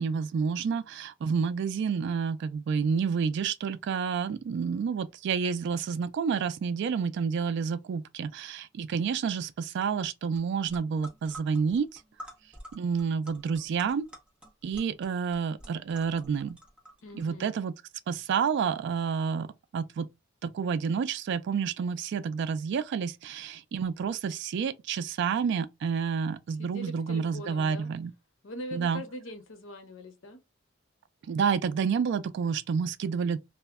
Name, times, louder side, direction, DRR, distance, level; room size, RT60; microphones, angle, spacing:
voice 1, 0.0-12.0 12.7-14.1 14.6-16.6 17.1-17.7 18.1-20.1 20.4-28.1 28.7-29.0 31.3-33.4, right 6 dB, 60° right, 0.3 m, -29 dB
sound 1, 10.3-10.4 10.7-17.2, equal, 5° right, 0.7 m, -49 dB
voice 2, 17.0-17.5 26.6-27.9 28.4-30.4, left 1 dB, 70° left, 0.7 m, -42 dB
2.1 x 2.1 x 3.4 m
head